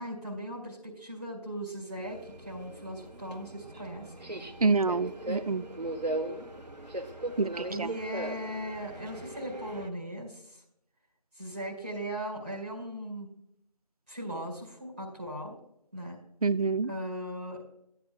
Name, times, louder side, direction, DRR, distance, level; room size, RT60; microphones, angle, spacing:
voice 1, 0.0-4.1 7.7-10.6 11.3-13.3 14.1-15.6 15.9-16.2 16.9-17.7, right 1 dB, 15° right, -7 dB, 2.0 m, -38 dB
Subway metro underground, 2.0-9.9, right 1 dB, 85° right, 1.2 m, -38 dB
voice 2, 4.6-5.7 7.4-7.9 16.4-16.9, right 4 dB, 60° right, 15 dB, 0.5 m, -27 dB
14.5 x 9.5 x 2.2 m, 0.77 s
figure-of-eight pair, 170°, 21 cm